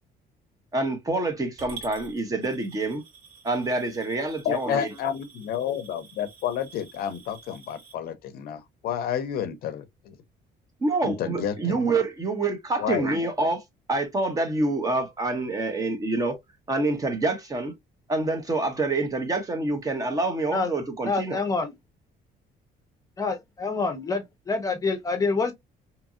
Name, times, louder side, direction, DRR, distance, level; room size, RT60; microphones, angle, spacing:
voice 1, 0.7-3.0 3.4-4.9 10.8-13.6 13.9-16.4 16.7-17.8 18.1-21.4, right 2 dB, 20° right, 0.6 m, -27 dB
Coin (dropping) / Glass, 1.6-7.9, right 5 dB, 65° right, 1.8 m, -48 dB
voice 2, 4.4-10.2 11.0-11.9 12.8-13.1, left 9 dB, 60° left, 0.5 m, -30 dB
voice 3, 21.0-21.7 23.2-25.5, left 4 dB, 20° left, 0.6 m, -27 dB
2.8 x 2.5 x 2.3 m
cardioid pair, 160°, 17 cm